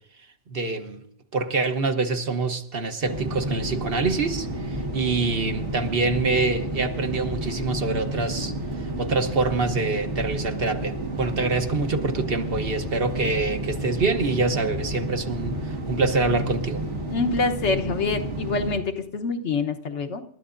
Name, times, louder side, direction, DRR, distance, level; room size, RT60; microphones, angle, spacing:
voice 1, 0.5-1.0 1.3-8.5 9.0-16.8, right 3 dB, 55° right, 6 dB, 1.2 m, -25 dB
sound 1, 3.1-18.8, right 1 dB, 85° right, 2.2 m, -31 dB
voice 2, 17.1-20.2, left 4 dB, 80° left, 7 dB, 1.3 m, -26 dB
28.5 x 13.0 x 2.6 m, 0.65 s
omnidirectional pair, 1.2 m